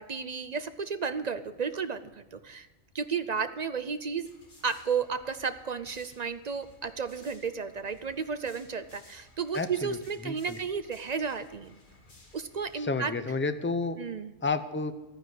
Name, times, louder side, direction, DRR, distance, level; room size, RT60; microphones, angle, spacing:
voice 1, 0.0-2.7 2.9-4.3 4.6-11.8 12.3-13.1 14.0-14.3, right 6 dB, 50° right, 11 dB, 0.5 m, -33 dB
sound 1, 4.2-12.8, left 2 dB, 40° left, 1.9 m, -58 dB
voice 2, 9.5-10.0 10.2-10.6 12.8-14.0 14.4-14.9, left 3 dB, 20° left, 11 dB, 0.3 m, -30 dB
13.0 x 9.5 x 6.5 m, 1.1 s
omnidirectional pair, 1.3 m